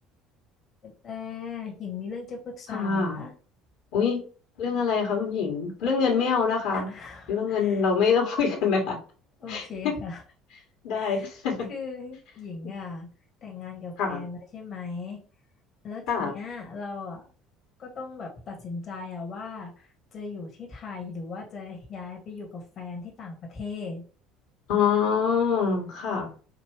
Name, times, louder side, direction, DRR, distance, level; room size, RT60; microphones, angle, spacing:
voice 1, 0.8-3.3 6.7-7.8 9.4-10.2 10.9-11.3 11.7-13.1 13.4-15.2 15.8-17.2 17.8-24.0, left 4 dB, 45° left, 0 dB, 1.5 m, -38 dB
voice 2, 2.7-3.2 3.9-4.2 4.6-6.9 7.3-9.0 9.5-10.0 10.8-11.7 14.0-14.2 16.1-16.3 24.7-26.3, left 6 dB, 65° left, 2 dB, 1.7 m, -25 dB
5.1 x 2.7 x 3.3 m, 0.39 s
hypercardioid pair, 65°, 0 cm